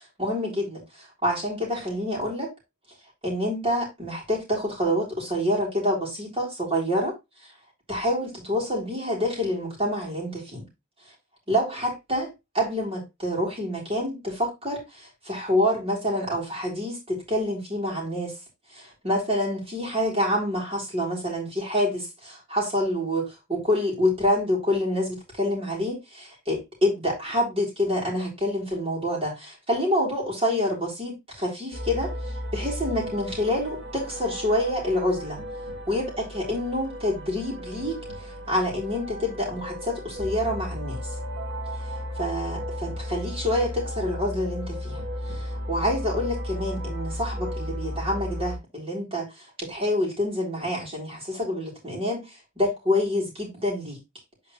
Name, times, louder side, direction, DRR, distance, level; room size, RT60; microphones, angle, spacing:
voice 1, 0.0-2.5 3.2-7.1 7.9-10.7 11.5-18.4 18.7-32.2 32.5-35.4 35.9-41.0 42.2-49.3 49.6-52.2 52.6-54.0, left 1 dB, 30° right, 3.6 m, -27 dB
sound 1, 31.7-48.6, equal, 65° right, 1.9 m, -34 dB
8.8 x 4.7 x 3.1 m
head